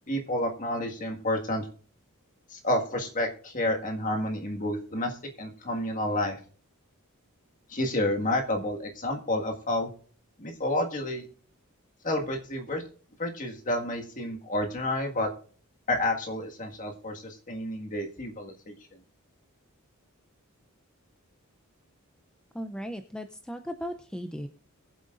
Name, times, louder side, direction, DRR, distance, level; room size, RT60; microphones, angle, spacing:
voice 1, 0.1-1.6 2.5-6.4 7.7-9.9 10.4-11.2 12.0-12.8 13.2-15.3 15.9-18.7, left 1 dB, 35° left, 2 dB, 1.8 m, -30 dB
voice 2, 22.5-24.5, equal, 5° left, 8 dB, 0.5 m, -37 dB
21.5 x 7.7 x 2.5 m, 0.43 s
head